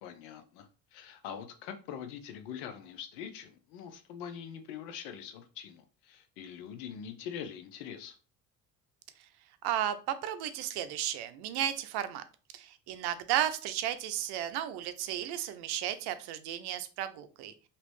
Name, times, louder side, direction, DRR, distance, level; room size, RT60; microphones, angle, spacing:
voice 1, 0.0-8.2, left 8 dB, 80° left, 8 dB, 0.7 m, -43 dB
voice 2, 9.6-12.2 12.5-17.5, right 11 dB, 70° right, 11 dB, 0.6 m, -34 dB
3.0 x 2.9 x 3.2 m, 0.36 s
supercardioid pair, 75°, 41 cm